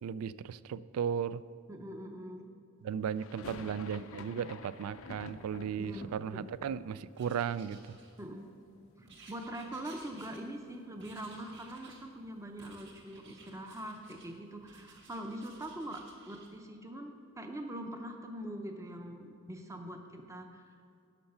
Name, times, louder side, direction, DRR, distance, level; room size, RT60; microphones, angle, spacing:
voice 1, 0.0-1.4 2.8-7.8, right 7 dB, 75° right, 18 dB, 0.3 m, -36 dB
voice 2, 1.7-2.5 5.8-6.5 8.2-8.5 9.0-20.8, right 1 dB, 15° right, 4 dB, 0.6 m, -43 dB
sound 1, 3.1-9.1 9.4-10.2 10.5-10.6 10.8-13.0, left 4 dB, 65° left, 0.6 m, -51 dB
Writing, 7.1-8.5 9.1-10.7 11.0-12.1 12.6-14.3 14.6-16.5, right 3 dB, 55° right, 1.6 m, -57 dB
12.0 x 5.6 x 5.6 m, 2.6 s
head